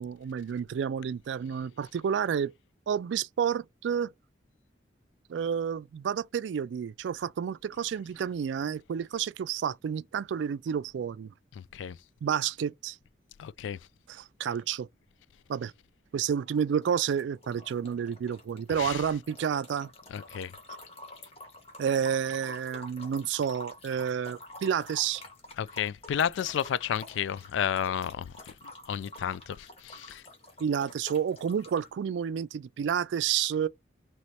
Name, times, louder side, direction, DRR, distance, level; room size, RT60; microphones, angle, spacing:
voice 1, 0.0-2.5 2.9-4.1 5.3-11.3 12.2-13.0 14.1-14.9 15.5-15.7 16.1-19.9 21.8-25.2 30.6-33.7, right 8 dB, 80° right, 0.3 m, -30 dB
voice 2, 13.4-13.8 18.8-19.0 20.1-20.5 25.6-28.5 28.9-30.2, left 8 dB, 85° left, 0.3 m, -32 dB
sound 1, 16.2-16.6 16.8-31.9, left 2 dB, 30° left, 1.3 m, -49 dB
3.1 x 3.0 x 4.1 m
head